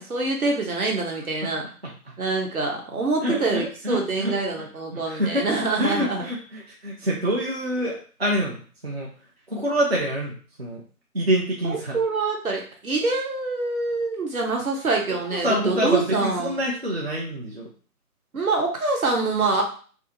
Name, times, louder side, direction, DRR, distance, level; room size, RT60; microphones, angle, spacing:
voice 1, 0.0-1.6 2.2-6.2 11.6-16.6 18.3-19.6, right 3 dB, 65° right, 1 dB, 1.0 m, -25 dB
voice 2, 3.2-5.5 5.8-9.1 9.5-10.8 11.1-12.0 15.3-17.7, equal, 45° right, -3 dB, 0.5 m, -26 dB
2.6 x 2.5 x 2.7 m, 0.41 s
figure-of-eight pair, 160°, 46 cm